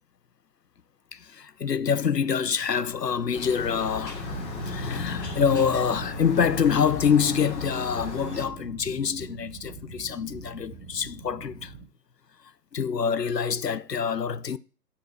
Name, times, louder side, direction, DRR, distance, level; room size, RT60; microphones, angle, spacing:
voice 1, 1.1-11.7 12.7-14.6, left 7 dB, 80° left, 0.8 m, -26 dB
sound 1, 3.3-8.5, left 3 dB, 45° left, 2.9 m, -37 dB
sound 2, 4.2-11.9, right 4 dB, 10° left, 2.3 m, -41 dB
10.0 x 5.6 x 8.5 m
figure-of-eight pair, 145°, 48 cm